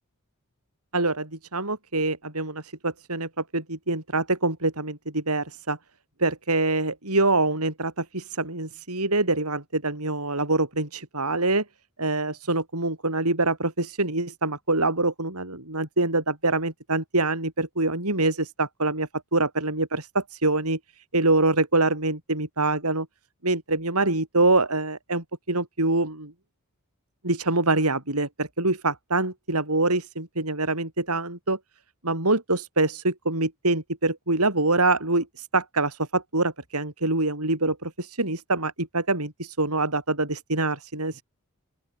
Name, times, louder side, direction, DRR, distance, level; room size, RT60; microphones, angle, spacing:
voice 1, 0.9-5.8 6.2-11.6 12.0-20.8 21.1-23.1 23.4-26.3 27.2-31.6 32.0-41.2, right 2 dB, 85° right, 7.3 m, -25 dB
open air
head